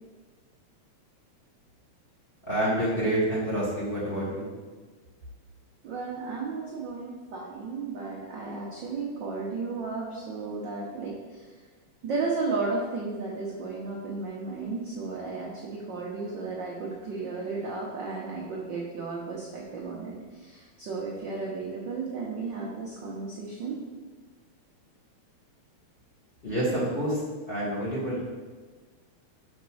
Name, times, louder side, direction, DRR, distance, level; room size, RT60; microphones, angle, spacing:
voice 1, 2.5-4.4 26.4-27.2 27.5-28.2, right 1 dB, 25° left, -6 dB, 1.6 m, -27 dB
voice 2, 5.8-11.5 12.0-23.8, right 4 dB, 75° right, -3 dB, 1.0 m, -34 dB
5.9 x 4.2 x 6.2 m, 1.4 s
omnidirectional pair, 3.3 m